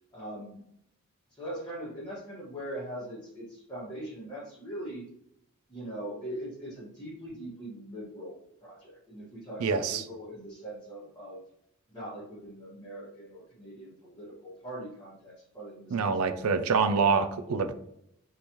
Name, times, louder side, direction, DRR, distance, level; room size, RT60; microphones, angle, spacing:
voice 1, 0.1-0.6 1.3-5.0 5.7-11.4 11.9-16.4, right 1 dB, 20° left, -9 dB, 1.4 m, -41 dB
voice 2, 9.6-10.0 15.9-17.7, right 5 dB, 90° right, 10 dB, 0.5 m, -26 dB
5.3 x 3.3 x 3.0 m, 0.75 s
head